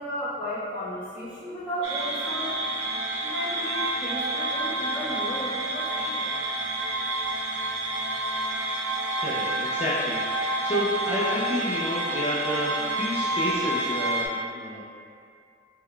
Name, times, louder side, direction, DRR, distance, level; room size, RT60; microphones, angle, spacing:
voice 1, 0.0-2.5 3.2-6.3, equal, 5° right, -14 dB, 1.2 m, -34 dB
sound 1, 1.8-14.3, right 2 dB, 80° right, 0.5 m, -29 dB
voice 2, 9.2-14.8, left 1 dB, 35° left, -8 dB, 0.4 m, -30 dB
3.7 x 2.1 x 3.2 m, 2.3 s
head